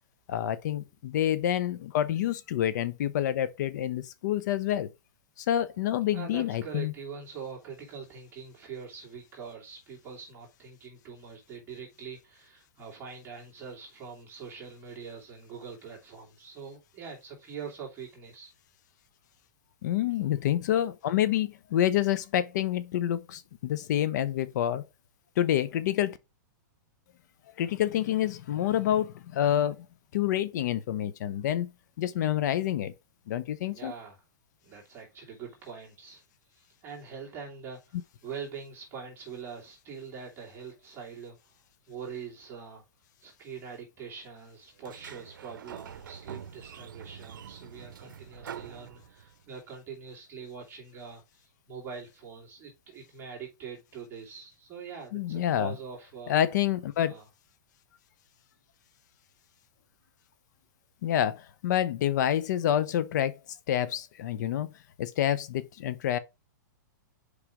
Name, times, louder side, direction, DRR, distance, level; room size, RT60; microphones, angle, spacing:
voice 1, 0.3-4.9 5.4-6.9 19.8-24.8 25.4-26.2 27.6-29.8 30.1-31.7 32.0-32.9 33.3-33.9 55.1-55.7 56.3-57.1 61.0-63.4 63.7-64.7 65.0-66.2, left 11 dB, 65° left, 0.8 m, -28 dB
voice 2, 6.1-18.5 20.2-20.3 33.7-34.2 34.6-36.2 36.5-41.4 41.9-42.8 43.2-56.4 57.0-57.3, right 6 dB, 20° right, 2.5 m, -43 dB
Sliding door, 44.8-49.5, right 8 dB, 90° right, 0.6 m, -45 dB
4.9 x 4.8 x 5.0 m
hypercardioid pair, 145°, 11 cm